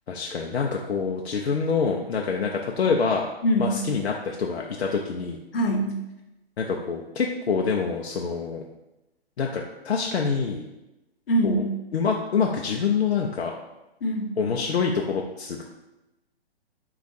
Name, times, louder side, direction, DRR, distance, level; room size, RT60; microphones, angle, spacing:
voice 1, 0.1-3.3 3.6-5.4 6.6-8.6 9.4-10.6 11.4-11.6 11.9-13.5 14.4-15.6, left 5 dB, 80° left, 0 dB, 0.6 m, -26 dB
voice 2, 3.4-3.8 5.5-5.9 11.3-11.6 14.0-14.3, equal, 65° left, 2 dB, 0.9 m, -23 dB
4.6 x 2.4 x 4.1 m, 0.96 s
hypercardioid pair, 135°, 32 cm